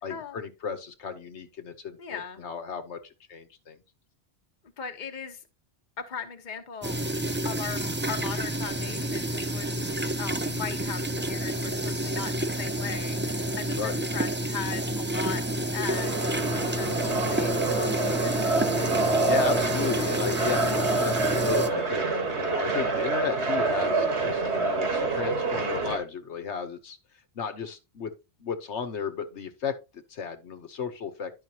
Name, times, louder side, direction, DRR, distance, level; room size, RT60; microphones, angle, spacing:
voice 1, 0.0-3.0 3.3-3.8 13.8-13.9 19.0-22.1 22.3-27.0 27.3-28.1 28.4-29.7 30.1-31.3, left 6 dB, 85° left, 1.3 m, -34 dB
voice 2, 2.0-2.4 4.8-5.4 6.0-7.0 7.4-16.1 16.5-18.6, left 7 dB, 45° left, 1.1 m, -39 dB
sound 1, 6.8-21.7, right 1 dB, 15° right, 0.4 m, -29 dB
sound 2, 15.9-26.0, right 3 dB, 80° right, 1.8 m, -27 dB
11.0 x 5.6 x 2.8 m
omnidirectional pair, 1.1 m